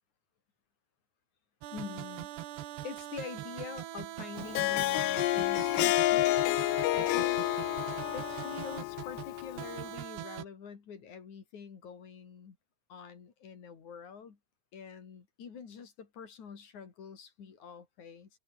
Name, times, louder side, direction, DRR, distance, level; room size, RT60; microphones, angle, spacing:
sound 1, 1.6-10.4, right 14 dB, 75° right, 3.3 m, -42 dB
voice 1, 1.7-2.3 2.8-6.5 6.9-7.4 8.1-12.6 12.9-14.4 14.7-18.3, left 6 dB, 45° left, 4.2 m, -45 dB
Harp, 4.4-9.8, left 19 dB, 80° left, 2.9 m, -29 dB
omnidirectional pair, 5.0 m